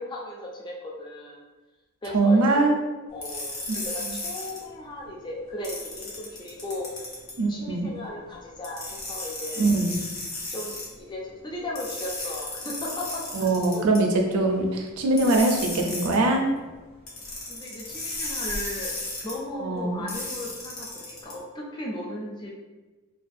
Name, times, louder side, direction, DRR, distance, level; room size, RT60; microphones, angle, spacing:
voice 1, 0.0-1.4 2.0-2.8 3.1-6.9 7.5-9.7 10.5-13.8 16.9-17.1 17.5-22.5, left 1 dB, 20° left, -3 dB, 0.4 m, -36 dB
voice 2, 2.1-2.8 3.7-3.8 7.4-7.9 9.6-10.0 13.3-16.5 19.6-20.0, right 2 dB, 85° right, 2 dB, 0.4 m, -22 dB
sound 1, 3.2-4.6 5.6-7.3 8.6-10.9 11.8-14.0 15.2-16.2 17.1-19.3 20.1-21.3, left 2 dB, 70° left, 0.8 m, -34 dB
2.4 x 2.3 x 2.5 m, 1.2 s
head